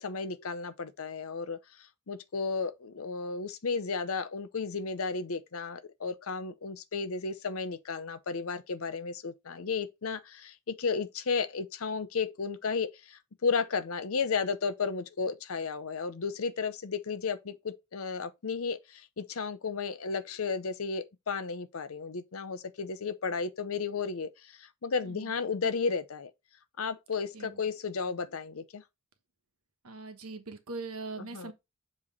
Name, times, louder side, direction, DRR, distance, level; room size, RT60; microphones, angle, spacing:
voice 1, 0.0-1.6 2.1-26.3 26.8-28.8 31.2-31.5, left 5 dB, 70° left, 0.7 m, -33 dB
voice 2, 25.0-25.3 27.3-27.6 29.8-31.5, right 3 dB, 85° right, 1.2 m, -41 dB
7.4 x 3.1 x 4.1 m
head